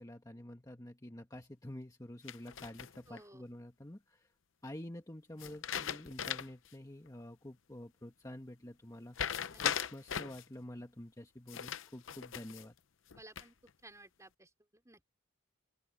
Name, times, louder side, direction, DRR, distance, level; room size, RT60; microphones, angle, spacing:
voice 1, 0.0-4.3 4.6-9.3 9.6-12.8, left 1 dB, 15° left, 1.6 m, -48 dB
sound 1, 2.3-3.2 5.4-6.7 7.1-7.2 9.1-10.4 11.5-12.7 13.1-13.7, left 8 dB, 65° left, 0.7 m, -39 dB
voice 2, 3.1-3.4 9.5-9.6 13.1-13.5 13.8-15.1, right 2 dB, 15° right, 4.5 m, -56 dB
open air
head